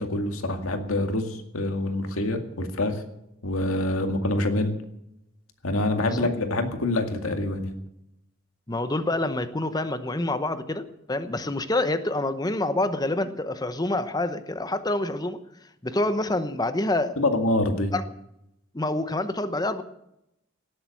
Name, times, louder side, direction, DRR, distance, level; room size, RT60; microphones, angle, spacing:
voice 1, 0.0-3.0 3.4-4.7 5.6-7.7 17.2-18.0, left 1 dB, 90° left, 5 dB, 2.1 m, -26 dB
voice 2, 8.7-10.8 11.1-15.4 15.8-17.2 17.9-18.0 18.7-19.8, left 2 dB, 20° left, 11 dB, 0.9 m, -27 dB
18.0 x 8.0 x 8.4 m, 0.82 s
head